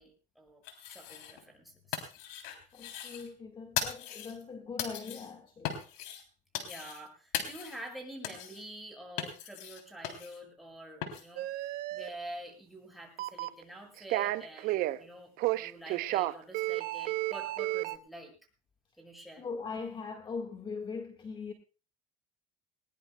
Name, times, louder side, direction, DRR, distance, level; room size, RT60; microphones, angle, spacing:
voice 1, 0.0-2.1 6.5-18.3 19.0-19.4, right 1 dB, ahead, 7.5 m, -48 dB
sound 1, 0.6-1.5 1.7-3.3 3.8-4.4 4.8-5.3 5.7-6.2 6.5-7.1 7.3-7.9 8.2-8.6 9.2-10.4 11.0-11.3, left 9 dB, 80° left, 3.3 m, -38 dB
voice 2, 2.7-5.8 19.4-21.5, left 5 dB, 30° left, 1.7 m, -40 dB
sound 2, 11.4-12.1 13.2-13.6 14.0-15.0 15.4-18.0, right 17 dB, 60° right, 0.8 m, -32 dB
20.5 x 19.5 x 2.2 m
supercardioid pair, 120°, 17 cm